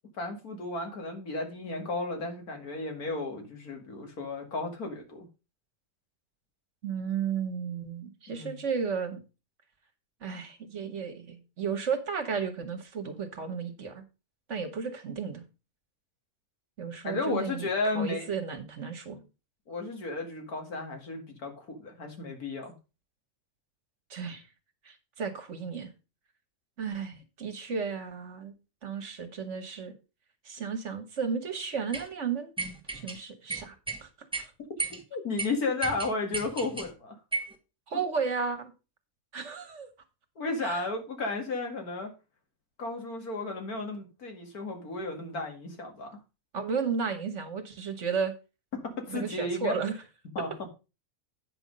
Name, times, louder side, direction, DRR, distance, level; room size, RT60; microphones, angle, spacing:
voice 1, 0.1-5.3 8.3-8.6 17.0-18.3 19.7-22.7 35.1-37.2 40.4-42.1 42.8-46.2 48.7-49.8 50.4-50.5, left 3 dB, 90° left, 2.5 m, -33 dB
voice 2, 6.8-9.2 10.2-14.0 14.5-15.4 16.8-17.7 17.9-19.2 24.1-24.4 24.9-25.9 26.8-28.5 28.8-29.9 30.5-32.5 32.9-33.8 34.0-34.1 34.4-34.5 37.9-38.7 39.3-39.9 40.6-40.9 46.5-48.3 49.1-50.0, right 6 dB, 55° right, 1.6 m, -33 dB
sound 1, 31.9-32.1 32.6-33.2 33.5-34.0 34.3-34.4 34.8-35.0 35.4-35.5 35.8-36.9 37.3-37.5, right 3 dB, 5° right, 1.2 m, -34 dB
9.0 x 5.8 x 5.2 m
omnidirectional pair, 1.5 m